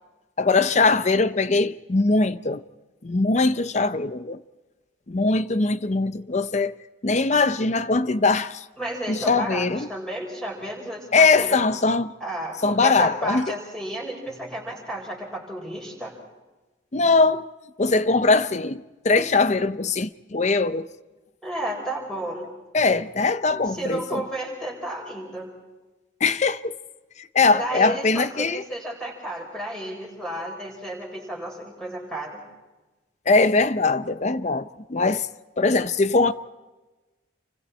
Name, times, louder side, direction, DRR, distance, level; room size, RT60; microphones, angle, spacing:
voice 1, 0.4-2.6 3.0-4.4 5.1-6.8 7.0-8.6 9.1-9.9 11.1-12.1 12.6-13.5 16.9-17.5 17.8-20.9 22.7-24.2 26.2-26.8 27.2-28.6 33.3-35.3 35.6-36.3, left 3 dB, 40° left, 0.6 m, -21 dB
voice 2, 8.8-11.6 12.2-16.1 21.4-22.5 23.6-25.5 27.5-32.4, right 1 dB, 5° left, 5.5 m, -32 dB
28.5 x 25.5 x 4.3 m
head